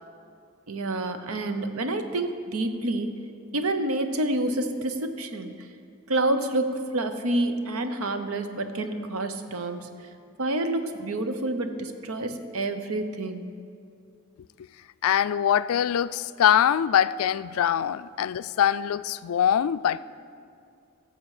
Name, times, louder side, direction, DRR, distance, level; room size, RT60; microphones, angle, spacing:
voice 1, 0.7-3.1 3.5-5.5 6.1-9.9 10.4-13.5, right 2 dB, 80° right, 0.8 m, -28 dB
voice 2, 15.0-20.0, left 9 dB, 75° left, 0.3 m, -23 dB
16.0 x 7.1 x 4.9 m
head